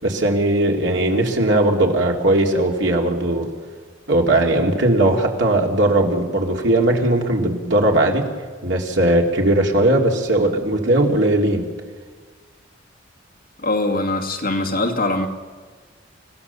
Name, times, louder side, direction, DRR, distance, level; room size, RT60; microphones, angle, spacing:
voice 1, 0.0-3.5 4.1-8.2 8.6-11.6, right 1 dB, 70° right, 1 dB, 3.0 m, -18 dB
voice 2, 13.6-15.3, left 2 dB, 50° left, 2 dB, 2.3 m, -22 dB
29.5 x 16.0 x 7.1 m, 1.5 s
head